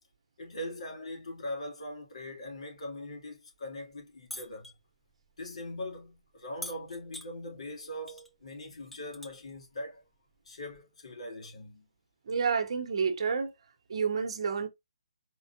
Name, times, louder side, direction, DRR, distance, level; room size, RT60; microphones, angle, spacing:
voice 1, 0.4-4.7 5.4-10.0 10.4-11.9, left 1 dB, 65° left, 3.4 m, -41 dB
sound 1, 4.3-4.7 6.6-7.3 8.1-8.3 8.6-9.5 10.7-10.8, equal, ahead, 0.6 m, -43 dB
voice 2, 12.3-13.5 13.9-14.7, right 5 dB, 55° right, 1.2 m, -29 dB
4.7 x 3.8 x 3.0 m
figure-of-eight pair, 145°, 4 cm